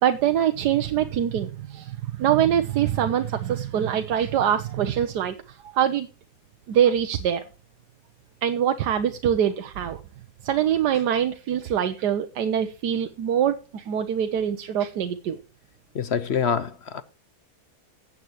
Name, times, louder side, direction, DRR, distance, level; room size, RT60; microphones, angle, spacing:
voice 1, 0.0-6.1 6.7-7.4 8.4-10.0 10.4-15.4, right 9 dB, 85° right, 1.4 m, -24 dB
voice 2, 15.9-17.0, left 7 dB, 55° left, 0.8 m, -25 dB
15.0 x 8.6 x 3.0 m
omnidirectional pair, 1.8 m